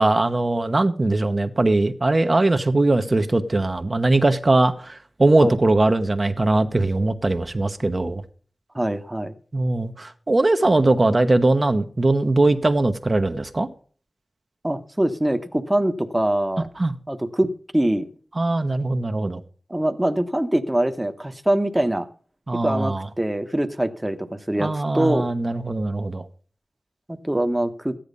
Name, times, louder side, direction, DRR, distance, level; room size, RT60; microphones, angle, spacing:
voice 1, 0.0-8.2 9.5-13.7 16.8-16.9 18.4-19.4 22.5-23.1 24.6-26.2, right 2 dB, 40° right, 6 dB, 1.1 m, -20 dB
voice 2, 8.7-9.3 11.1-11.2 14.6-16.7 17.1-18.1 19.7-22.1 22.6-25.3 27.1-28.0, right 1 dB, 15° right, 7 dB, 1.2 m, -23 dB
14.5 x 10.5 x 5.4 m, 0.43 s
wide cardioid pair, 80°, 0 cm